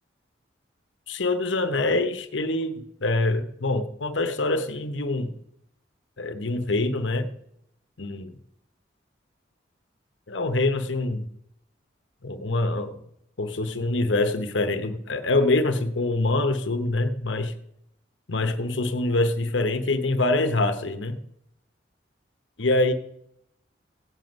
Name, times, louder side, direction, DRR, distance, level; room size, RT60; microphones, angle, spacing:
voice 1, 1.1-5.3 6.2-7.3 8.0-8.3 10.3-11.3 12.2-13.0 13.4-17.5 18.3-21.2 22.6-22.9, left 2 dB, 80° left, 9 dB, 1.0 m, -25 dB
17.0 x 7.8 x 5.3 m, 0.79 s
head